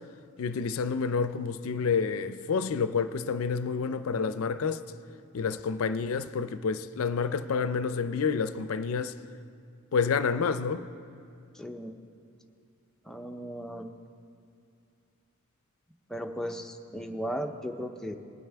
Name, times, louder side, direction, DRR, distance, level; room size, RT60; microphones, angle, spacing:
voice 1, 0.4-4.8 5.3-9.1 9.9-10.9, left 5 dB, 70° left, 0.4 m, -29 dB
voice 2, 11.5-11.9 13.0-13.9 16.1-18.2, equal, 5° left, 0.5 m, -36 dB
20.0 x 9.0 x 3.4 m
head